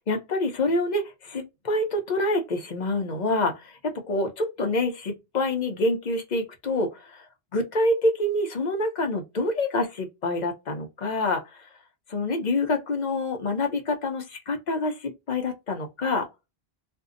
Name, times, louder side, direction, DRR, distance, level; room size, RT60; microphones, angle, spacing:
voice 1, 0.1-7.2 7.5-11.7 12.1-16.3, left 2 dB, 50° left, 0.7 m, -27 dB
2.6 x 2.2 x 2.5 m
omnidirectional pair, 1.0 m